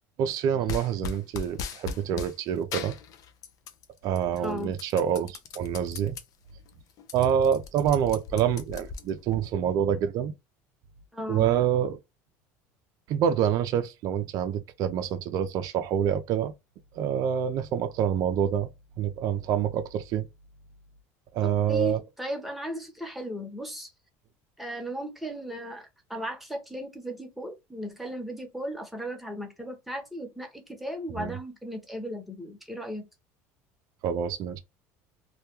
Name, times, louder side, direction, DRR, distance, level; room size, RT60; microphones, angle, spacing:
voice 1, 0.2-2.9 4.0-6.2 7.1-10.3 11.3-12.0 13.1-16.5 16.9-18.7 19.0-20.3 21.3-22.0 31.2-31.4 34.0-34.6, right 9 dB, 55° right, 0.4 m, -26 dB
sound 1, 0.7-2.3 2.7-3.8 4.2-6.2 6.7-6.8 7.0-9.4, left 5 dB, 55° left, 0.5 m, -37 dB
voice 2, 4.4-4.7 11.1-11.4 21.4-23.9 24.6-33.1, right 1 dB, ahead, 1.0 m, -36 dB
2.3 x 2.1 x 2.9 m
supercardioid pair, 90°, 7 cm